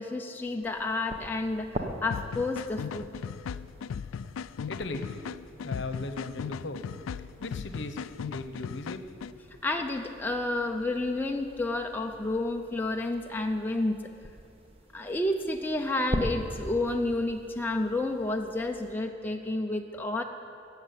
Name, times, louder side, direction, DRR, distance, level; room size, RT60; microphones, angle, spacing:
voice 1, 0.0-3.1 9.6-14.0 14.9-20.2, left 2 dB, 10° left, 2 dB, 0.5 m, -30 dB
sound 1, 0.6-18.9, equal, 30° right, 1.1 m, -43 dB
sound 2, 2.1-9.3, left 6 dB, 85° left, 0.3 m, -37 dB
voice 2, 4.7-5.3 5.6-6.8 7.2-8.0 8.3-9.0, left 2 dB, 60° left, 8 dB, 0.9 m, -37 dB
15.0 x 7.3 x 9.5 m, 2.7 s
head